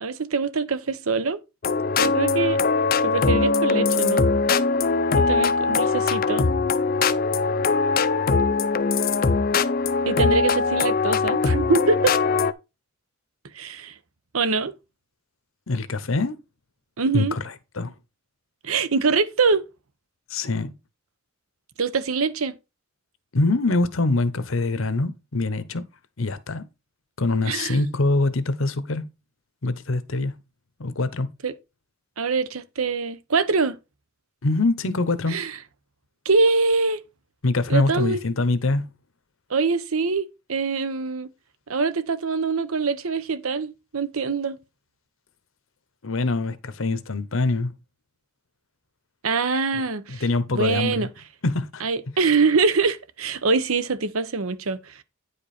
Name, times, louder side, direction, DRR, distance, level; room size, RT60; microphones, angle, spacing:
voice 1, 0.0-1.4 2.0-2.6 3.0-4.3 5.2-6.5 10.1-12.1 13.5-13.9 14.3-14.7 17.0-17.4 18.6-19.7 21.8-22.6 27.4-27.8 31.4-31.5 32.2-33.8 35.3-35.6 36.2-37.0 37.7-38.2 39.5-41.3 41.7-44.6 49.2-50.2 50.5-51.1 51.8-54.9, right 4 dB, 80° right, 0.8 m, -24 dB
sound 1, 1.6-12.5, left 4 dB, 40° left, 0.5 m, -21 dB
voice 2, 15.7-16.4 17.1-17.4 17.7-17.9 20.3-20.7 23.3-25.8 26.2-26.6 27.2-29.1 29.6-30.3 30.8-31.3 34.4-35.4 37.4-38.8 46.0-47.7 49.8-51.1 51.4-51.8, left 2 dB, 70° left, 0.9 m, -24 dB
9.7 x 5.2 x 4.3 m
head